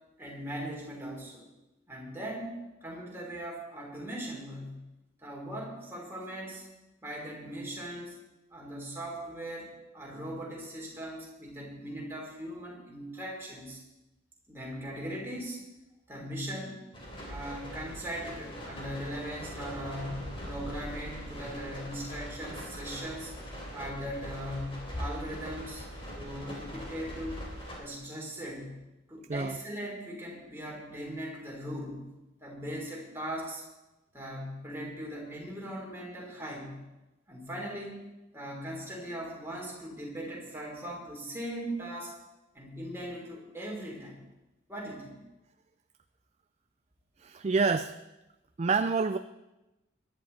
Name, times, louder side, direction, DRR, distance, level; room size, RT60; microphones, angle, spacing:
voice 1, 0.2-1.5 1.9-4.8 5.2-6.6 7.0-8.2 8.5-13.8 14.5-15.6 16.1-16.8 17.2-23.3 23.7-25.8 26.1-27.4 27.8-28.8 29.1-32.0 32.4-33.6 34.1-36.8 37.3-38.0 38.3-42.2 42.5-44.2 44.7-45.1, equal, 10° right, -3 dB, 4.0 m, -39 dB
sound 1, 16.9-27.8, equal, 25° left, 4.4 m, -41 dB
voice 2, 47.2-48.0 48.6-49.2, right 4 dB, 35° right, 10 dB, 0.4 m, -27 dB
22.0 x 11.5 x 4.3 m, 1.0 s
head